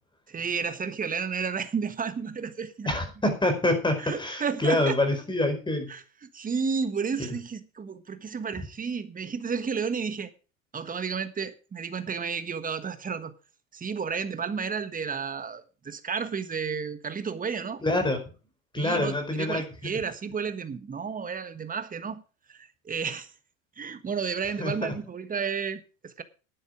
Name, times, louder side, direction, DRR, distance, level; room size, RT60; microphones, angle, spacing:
voice 1, 0.3-2.9 4.0-5.0 5.9-10.3 10.7-13.3 13.7-17.8 18.8-22.2 22.5-23.3 23.8-26.2, right 6 dB, 20° right, 1.4 m, -32 dB
voice 2, 2.8-5.9 17.8-18.2 18.7-19.9 24.6-24.9, left 1 dB, 10° left, 4.7 m, -26 dB
11.5 x 9.9 x 5.1 m
hypercardioid pair, 85°, 40 cm